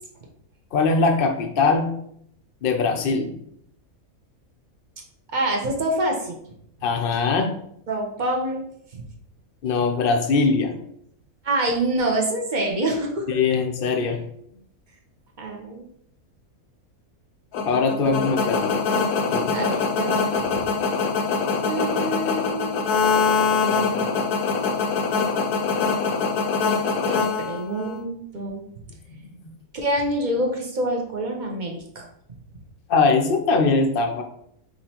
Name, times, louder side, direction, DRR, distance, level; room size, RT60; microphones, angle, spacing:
voice 1, 0.7-1.9 2.6-3.3 6.8-7.6 9.6-10.8 13.3-14.2 17.6-18.7 19.3-19.6 29.1-29.5 32.9-34.2, left 4 dB, 60° left, 5 dB, 0.6 m, -21 dB
voice 2, 5.3-6.4 7.9-8.7 8.9-9.0 9.9-10.0 11.4-13.4 15.4-15.9 18.0-18.1 19.5-20.2 20.5-20.6 21.6-22.7 23.3-24.1 27.0-28.6 29.7-32.1, right 1 dB, 40° right, 0 dB, 0.8 m, -26 dB
sound 1, 17.5-28.0, left 4 dB, 80° left, 1.1 m, -23 dB
5.3 x 3.1 x 2.8 m, 0.70 s
omnidirectional pair, 1.5 m